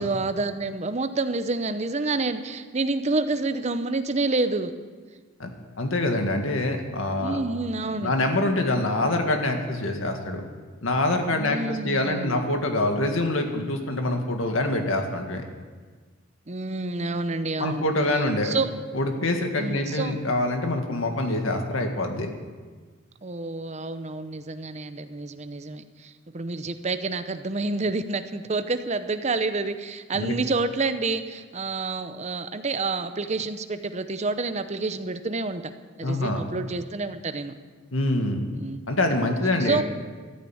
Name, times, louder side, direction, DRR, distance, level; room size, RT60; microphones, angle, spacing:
voice 1, 0.0-4.7 7.2-8.1 11.4-12.4 16.5-17.9 18.4-18.7 19.6-20.2 23.2-35.7 36.0-37.5 38.5-38.8 39.6-39.8, right 3 dB, 35° right, 10 dB, 0.7 m, -28 dB
voice 2, 5.8-7.4 8.0-10.4 10.8-15.4 17.6-18.6 18.9-22.3 30.1-30.3 36.0-36.4 37.9-38.5 38.9-39.8, left 2 dB, 85° left, 4 dB, 1.9 m, -25 dB
14.0 x 9.4 x 8.7 m, 1.5 s
head